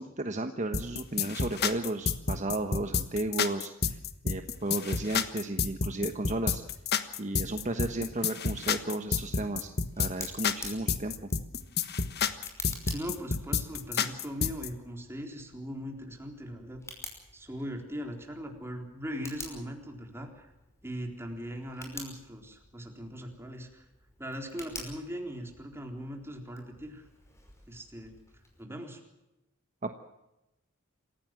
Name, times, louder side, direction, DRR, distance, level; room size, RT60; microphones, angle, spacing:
voice 1, 0.0-4.0 4.2-6.6 7.2-9.7 10.0-11.1 29.8-30.0, right 2 dB, 35° right, 7 dB, 1.2 m, -33 dB
sound 1, 0.7-14.7, left 6 dB, 50° left, 1.4 m, -30 dB
Tick, 9.0-28.6, left 2 dB, 15° left, 5.5 m, -49 dB
voice 2, 12.9-16.8 17.3-20.5 20.8-23.8 24.2-27.1 27.7-28.1 28.6-29.0, equal, 10° right, 3 dB, 3.9 m, -40 dB
27.5 x 16.0 x 7.6 m, 0.94 s
head